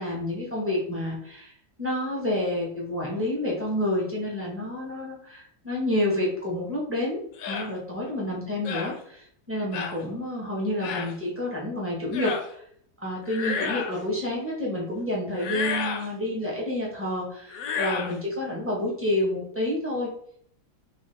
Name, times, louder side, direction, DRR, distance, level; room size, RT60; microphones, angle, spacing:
voice 1, 0.0-1.5 1.8-12.6 13.0-20.1, left 1 dB, 15° right, -4 dB, 0.5 m, -29 dB
sound 1, 7.4-7.7 8.6-8.9 9.7-10.0 10.8-11.1 12.1-12.5 13.2-14.0 15.3-16.1 17.5-18.1, left 6 dB, 70° left, 0.9 m, -31 dB
4.2 x 2.4 x 3.2 m, 0.65 s
omnidirectional pair, 1.8 m